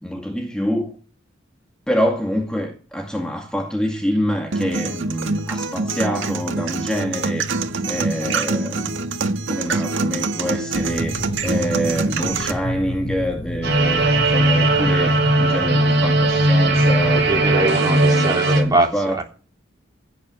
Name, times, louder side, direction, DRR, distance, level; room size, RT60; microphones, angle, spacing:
voice 1, 0.0-0.9 1.9-7.5 7.9-9.1 9.5-19.2, equal, 5° left, 2.1 m, -26 dB
sound 1, 4.5-12.5, right 3 dB, 75° right, 1.6 m, -25 dB
sound 2, 10.7-17.6, equal, 30° left, 3.5 m, -32 dB
sound 3, 13.6-18.6, right 2 dB, 55° right, 7.4 m, -17 dB
voice 2, 17.3-18.9 19.1-19.2, right 1 dB, 20° right, 3.4 m, -22 dB
16.0 x 9.5 x 8.1 m
head